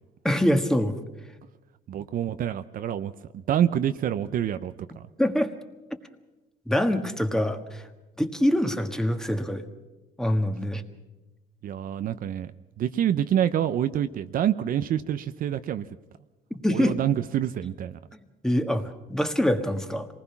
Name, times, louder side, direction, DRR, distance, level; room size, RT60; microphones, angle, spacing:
voice 1, 0.2-1.0 5.2-5.5 6.7-7.8 8.2-9.6 10.2-10.8 16.5-17.0 18.4-20.1, equal, 5° left, 6 dB, 1.6 m, -24 dB
voice 2, 1.9-5.0 11.6-12.5 12.8-15.9 16.7-18.0, right 10 dB, 55° right, 11 dB, 0.7 m, -27 dB
26.5 x 19.5 x 5.9 m, 1.1 s
cardioid pair, 110°, 17 cm